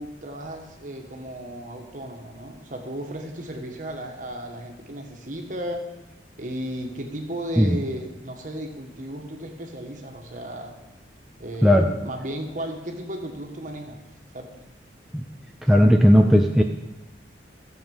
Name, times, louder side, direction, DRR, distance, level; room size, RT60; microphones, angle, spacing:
voice 1, 0.0-5.9 6.4-10.7 11.4-14.0 14.3-14.6, equal, 45° right, 2 dB, 1.5 m, -35 dB
voice 2, 15.7-16.6, equal, ahead, 2 dB, 0.5 m, -16 dB
13.5 x 7.2 x 5.5 m, 1.0 s
head